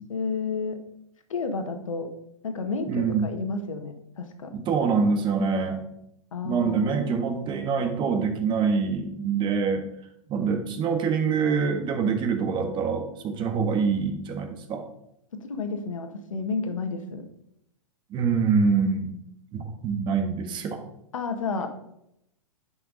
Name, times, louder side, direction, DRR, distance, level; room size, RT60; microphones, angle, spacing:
voice 1, 0.1-0.8 1.3-2.1 2.4-4.5 6.3-7.1 15.3-17.2 21.1-21.7, left 4 dB, 75° left, 6 dB, 1.6 m, -31 dB
voice 2, 2.9-3.3 4.5-5.8 6.4-9.8 10.3-14.8 18.1-19.2 19.5-20.8, right 5 dB, 30° right, 5 dB, 1.5 m, -25 dB
10.5 x 6.0 x 4.0 m, 0.78 s
hypercardioid pair, 115°, 17 cm